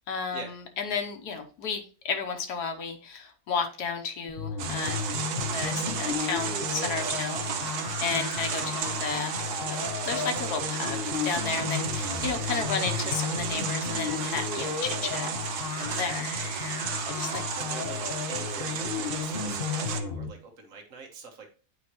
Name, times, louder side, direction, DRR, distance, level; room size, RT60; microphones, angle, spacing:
voice 1, 0.1-0.4 0.8-5.0 5.4-7.7 8.0-9.3 9.7-15.3 15.8-16.3 17.1-17.4, left 5 dB, 80° left, 5 dB, 1.4 m, -33 dB
sound 1, 4.3-20.3, left 5 dB, 45° left, 0.9 m, -33 dB
sound 2, 4.6-20.0, right 7 dB, 80° right, 1.3 m, -33 dB
voice 2, 12.0-12.9 17.5-18.0 18.3-21.5, right 4 dB, 55° right, 3 dB, 1.6 m, -44 dB
8.6 x 4.9 x 3.0 m, 0.38 s
omnidirectional pair, 1.7 m